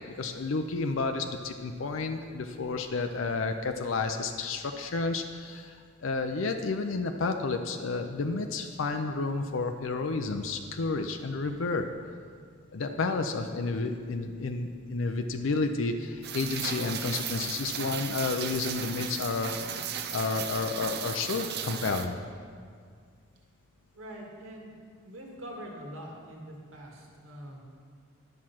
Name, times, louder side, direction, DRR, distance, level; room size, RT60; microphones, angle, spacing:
voice 1, 0.2-5.8 6.0-11.9 12.7-19.9 20.1-22.2, left 3 dB, 70° left, 6 dB, 0.5 m, -31 dB
Rain, 16.2-22.1, right 8 dB, 50° right, 0.6 m, -36 dB
voice 2, 23.9-24.7 25.0-27.6, equal, 80° right, -1 dB, 1.7 m, -44 dB
11.0 x 6.2 x 5.8 m, 2.1 s
head